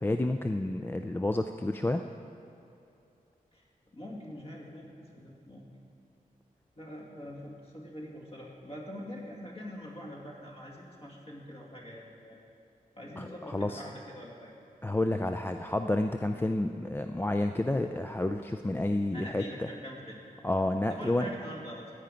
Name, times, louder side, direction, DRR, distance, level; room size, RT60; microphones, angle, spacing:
voice 1, 0.0-2.0 13.2-13.8 14.8-19.7 20.4-21.3, left 1 dB, 15° left, 6 dB, 0.4 m, -30 dB
voice 2, 3.9-5.7 6.8-12.4 13.0-14.6 19.1-20.2 20.9-21.9, equal, 40° left, -2 dB, 2.3 m, -44 dB
15.0 x 9.9 x 5.1 m, 2.7 s
wide cardioid pair, 120°, 15 cm